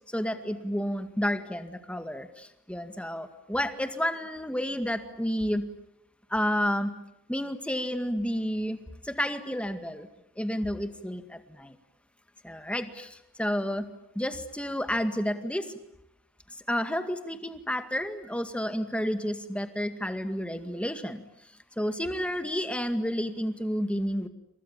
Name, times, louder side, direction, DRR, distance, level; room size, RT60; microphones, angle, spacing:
voice 1, 0.1-5.6 6.3-6.9 7.3-8.8 9.1-10.1 10.4-11.7 12.4-13.1 13.4-13.9 14.2-15.7 16.7-21.2 21.8-24.3, equal, 5° left, 8 dB, 1.9 m, -30 dB
29.0 x 27.0 x 7.3 m, 0.85 s
head